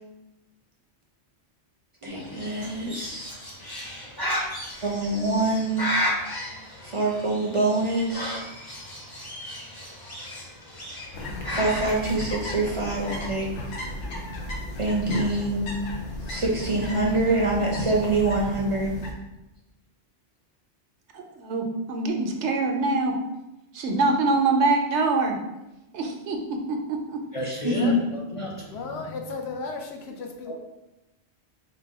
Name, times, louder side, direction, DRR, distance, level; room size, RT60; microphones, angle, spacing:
voice 1, 2.0-3.3 4.8-5.9 6.8-8.5 11.5-13.5 14.8-15.7 16.3-19.0 27.6-28.0, right 2 dB, 35° right, -2 dB, 0.5 m, -25 dB
Bird, 2.1-12.0, left 1 dB, 25° left, 0.8 m, -34 dB
sound 1, 11.1-19.1, left 1 dB, 90° left, 1.1 m, -34 dB
voice 2, 21.1-23.2 23.7-25.4 25.9-26.4 26.7-27.2, right 3 dB, 80° right, 3 dB, 1.0 m, -24 dB
voice 3, 27.3-29.1 30.5-30.6, left 1 dB, 45° left, -3 dB, 0.5 m, -33 dB
voice 4, 28.7-30.5, left 4 dB, 70° left, 3 dB, 0.8 m, -35 dB
4.1 x 2.2 x 4.6 m, 0.98 s
omnidirectional pair, 1.1 m